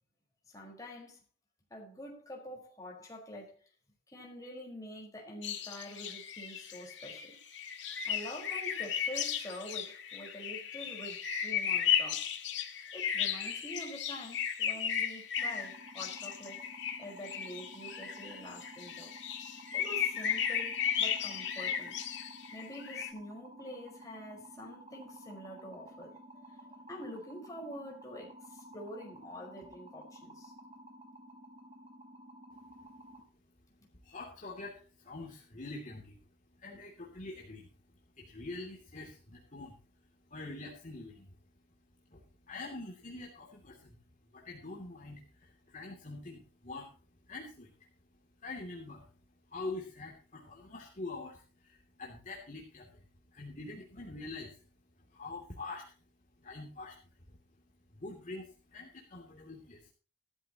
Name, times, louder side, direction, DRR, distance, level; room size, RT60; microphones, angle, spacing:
voice 1, 0.5-1.2 1.7-3.6 4.1-7.4 8.0-12.2 12.9-16.7 17.0-19.1 19.7-22.0 22.5-26.6 26.9-30.5, equal, 20° left, 4.9 m, -46 dB
sound 1, 5.4-23.1, left 8 dB, 70° left, 1.9 m, -35 dB
sound 2, 15.4-33.2, right 1 dB, 35° right, 4.4 m, -53 dB
voice 2, 34.0-36.2 36.6-37.7 38.2-39.7 40.3-41.3 42.1-42.2 42.5-43.9 44.3-46.9 47.3-47.7 48.4-49.1 49.5-53.0 53.3-54.6 55.1-55.8 56.4-57.0 57.3-57.4 57.9-59.9, left 2 dB, 45° left, 2.9 m, -45 dB
15.5 x 13.0 x 3.0 m
head